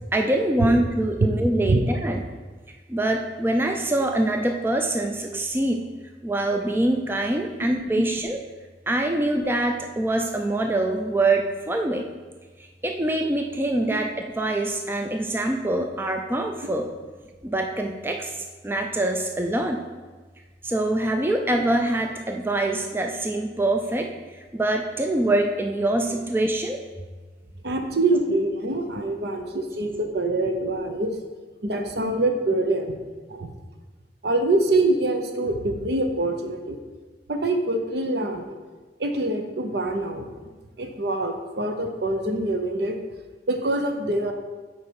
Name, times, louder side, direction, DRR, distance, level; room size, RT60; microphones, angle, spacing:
voice 1, 0.1-2.2 2.9-5.8 6.2-8.4 8.9-12.0 12.8-16.9 17.4-19.8 20.6-26.8, right 1 dB, 10° right, 3 dB, 0.4 m, -24 dB
voice 2, 27.6-31.1 31.6-33.0 33.3-33.5 34.2-36.8 37.3-38.6 39.0-40.3 40.8-42.9 43.5-44.3, right 2 dB, 60° right, 5 dB, 0.8 m, -25 dB
8.3 x 4.8 x 4.7 m, 1.4 s
head